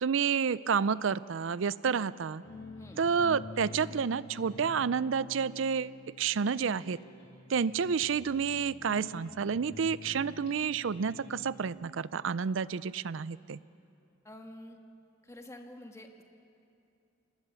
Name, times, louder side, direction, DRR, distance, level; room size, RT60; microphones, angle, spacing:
voice 1, 0.0-2.4 3.0-5.9 6.2-7.0 7.5-13.6, right 6 dB, 70° right, 18 dB, 0.5 m, -30 dB
sound 1, 2.4-11.7, left 2 dB, 70° left, 6.3 m, -48 dB
voice 2, 14.2-14.8 15.2-16.2, left 1 dB, 15° left, 4 dB, 1.6 m, -48 dB
25.5 x 19.5 x 7.0 m, 2.6 s
head